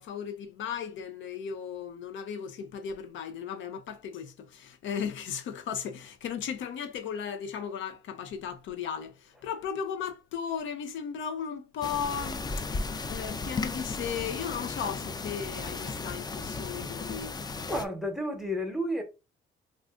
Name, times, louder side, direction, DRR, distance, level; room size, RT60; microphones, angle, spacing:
voice 1, 0.0-12.4 13.1-17.4, left 7 dB, 70° left, 0.5 m, -36 dB
sound 1, 11.8-17.8, left 3 dB, 20° left, 0.4 m, -35 dB
voice 2, 17.7-19.0, equal, ahead, 0.9 m, -31 dB
2.4 x 2.4 x 3.6 m
cardioid pair, 90°, 20 cm